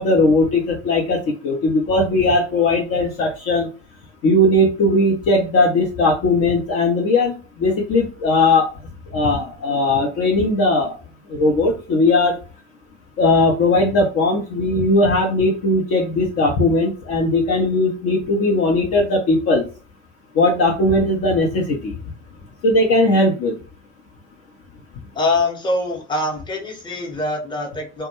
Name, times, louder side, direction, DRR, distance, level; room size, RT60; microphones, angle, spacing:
voice 1, 0.0-3.7 4.2-8.7 9.1-10.9 11.3-12.4 13.2-19.6 20.3-21.9 22.6-23.6, left 2 dB, 40° left, 0 dB, 0.7 m, -18 dB
voice 2, 25.1-28.1, left 2 dB, 10° left, 0 dB, 0.9 m, -23 dB
2.2 x 2.2 x 2.9 m, 0.34 s
hypercardioid pair, 75°, 37 cm